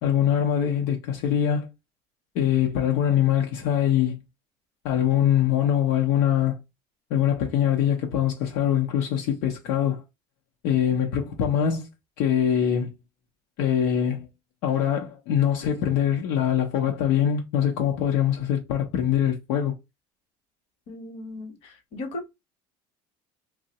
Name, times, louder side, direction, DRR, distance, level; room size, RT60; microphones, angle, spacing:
voice 1, 0.0-1.7 2.3-4.2 4.8-6.6 7.1-10.0 10.6-11.9 12.2-12.9 13.6-14.3 14.6-19.8, left 9 dB, 80° left, 0.6 m, -23 dB
voice 2, 20.9-22.3, left 2 dB, 55° left, 0.9 m, -37 dB
2.7 x 2.0 x 3.9 m
cardioid pair, 165°, 12 cm